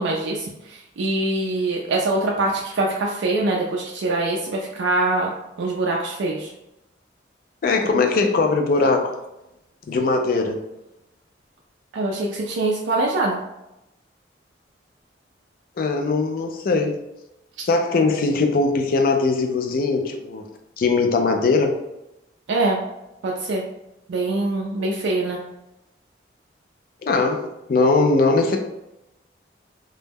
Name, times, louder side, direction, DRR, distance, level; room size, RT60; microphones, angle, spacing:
voice 1, 0.0-5.3 5.6-6.5 11.9-13.4 22.5-22.8 23.2-23.6 24.1-25.4, right 2 dB, 75° right, -2 dB, 0.3 m, -23 dB
voice 2, 7.6-9.2 9.9-10.6 15.8-17.0 17.6-20.5 20.8-21.8 27.0-28.6, left 3 dB, 50° left, 4 dB, 0.3 m, -20 dB
2.2 x 2.0 x 3.3 m, 0.90 s
head